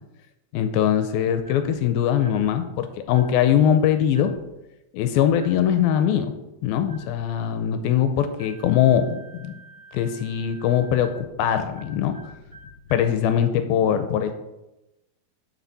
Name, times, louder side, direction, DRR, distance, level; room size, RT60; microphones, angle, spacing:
voice 1, 0.5-4.3 4.9-6.3 6.6-9.5 9.9-12.1 12.9-14.3, left 9 dB, 80° left, 8 dB, 2.3 m, -21 dB
sound 1, 1.4-1.7 2.1-2.5 3.1-3.4 4.1-4.5 5.3-5.7 6.8-7.2 8.4-13.2, equal, 40° left, 2.0 m, -47 dB
11.5 x 6.1 x 4.1 m, 0.97 s
omnidirectional pair, 4.6 m